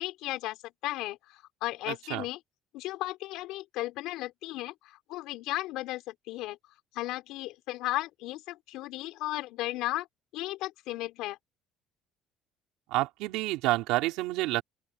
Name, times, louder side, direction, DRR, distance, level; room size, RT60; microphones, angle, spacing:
voice 1, 0.0-2.4 2.7-6.6 6.9-10.1 10.3-11.4, left 17 dB, 75° left, 4.6 m, -35 dB
voice 2, 1.9-2.3 12.9-14.6, right 19 dB, 80° right, 4.2 m, -29 dB
open air
cardioid pair, 140°, 0 cm